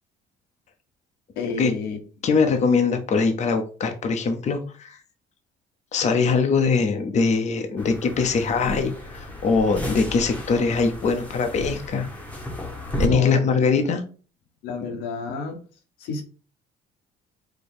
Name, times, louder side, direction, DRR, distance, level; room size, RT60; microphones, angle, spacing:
voice 1, 1.4-2.0 13.0-13.8 14.6-15.6 16.0-16.2, left 4 dB, 90° left, 1.1 m, -30 dB
voice 2, 2.2-5.0 5.9-12.1 13.0-14.0, left 4 dB, 45° left, 0.7 m, -22 dB
sound 1, 7.8-13.1, equal, 10° left, 1.1 m, -33 dB
4.9 x 2.2 x 4.3 m
cardioid pair, 110°, 17 cm